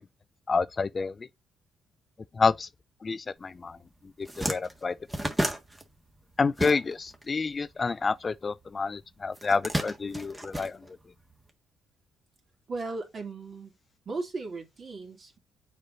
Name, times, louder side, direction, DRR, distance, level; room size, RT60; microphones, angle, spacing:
voice 1, 0.5-1.3 2.3-2.7 3.0-3.8 4.2-5.0 6.4-10.8, left 4 dB, 35° left, 0.4 m, -28 dB
sound 1, 3.7-3.8 4.1-7.2 7.5-8.7 9.3-11.3, right 1 dB, 15° right, 1.5 m, -33 dB
voice 2, 12.7-13.8 14.0-15.4, right 3 dB, 45° right, 2.8 m, -36 dB
6.6 x 4.5 x 4.0 m
cardioid pair, 90°, 0 cm